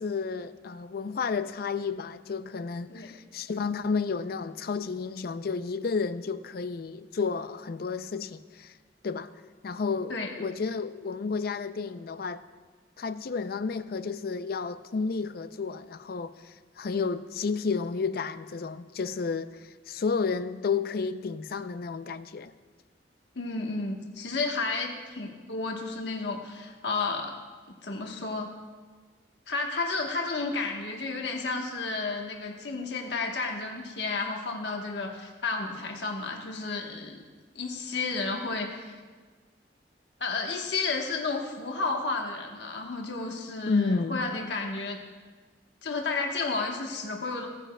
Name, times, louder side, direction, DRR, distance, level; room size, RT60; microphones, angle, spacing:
voice 1, 0.0-8.7 9.0-9.3 9.6-12.4 13.0-22.5 43.7-44.2, left 5 dB, 55° left, 12 dB, 0.4 m, -31 dB
voice 2, 23.3-27.3 27.8-28.5 29.5-37.2 37.5-39.0 40.2-45.0 45.8-47.5, left 3 dB, 75° left, 1 dB, 1.2 m, -32 dB
17.0 x 9.7 x 2.2 m, 1.4 s
head